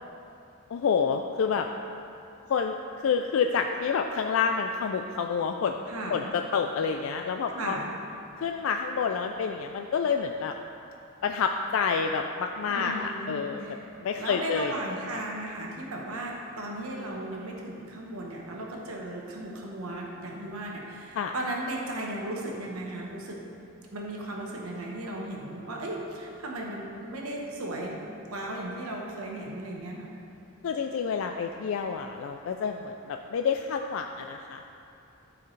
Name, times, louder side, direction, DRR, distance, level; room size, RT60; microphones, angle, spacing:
voice 1, 0.7-1.7 2.5-2.7 3.0-5.8 6.1-7.8 8.4-10.5 11.2-13.6 14.0-14.7 15.1-15.2 21.2-21.3 30.6-34.6, left 6 dB, 65° left, 5 dB, 0.3 m, -28 dB
voice 2, 5.9-6.3 7.5-7.9 12.7-13.8 14.2-23.4 23.9-30.1, right 1 dB, 90° right, -1 dB, 1.1 m, -36 dB
13.0 x 4.7 x 3.2 m, 2.7 s
head